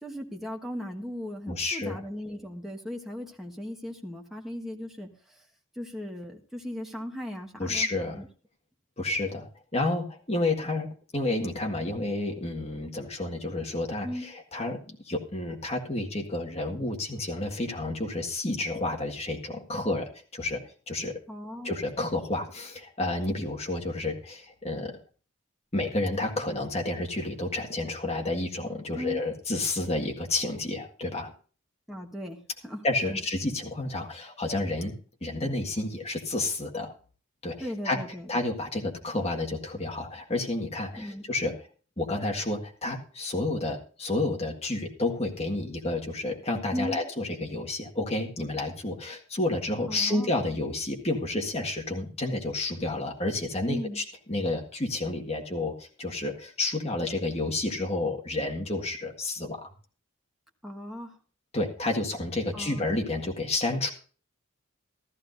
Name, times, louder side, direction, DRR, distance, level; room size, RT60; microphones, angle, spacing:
voice 1, 0.0-5.4 5.7-7.9 8.2-8.3 14.0-14.3 21.3-21.7 28.9-29.2 31.9-33.2 37.6-38.3 41.0-41.2 46.7-47.0 49.9-50.3 53.7-54.0 60.6-61.2 62.5-62.8, equal, ahead, 0 dB, 1.3 m, -37 dB
voice 2, 1.5-2.0 7.6-8.2 9.0-20.6 20.9-21.1 21.6-24.9 25.7-31.3 32.8-34.9 35.2-36.9 37.4-38.0 38.3-41.5 42.0-59.7 61.5-63.9, left 2 dB, 30° left, 1 dB, 1.7 m, -30 dB
14.0 x 14.0 x 2.6 m, 0.39 s
head